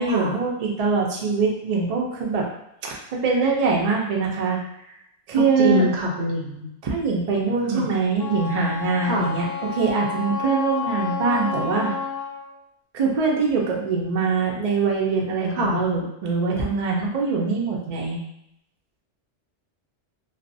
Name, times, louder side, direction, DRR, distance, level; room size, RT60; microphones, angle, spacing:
voice 1, 0.0-2.5 2.8-4.6 5.3-5.8 6.8-11.9 12.9-18.2, right 4 dB, 55° right, -1 dB, 0.4 m, -23 dB
voice 2, 5.4-6.7 7.7-7.9 9.0-9.4 15.6-15.8, equal, 75° right, -1 dB, 0.8 m, -24 dB
Wind instrument woodwind instrument, 8.2-12.5, left 6 dB, 65° left, 0.7 m, -30 dB
2.4 x 2.0 x 2.5 m, 0.80 s
omnidirectional pair, 1.2 m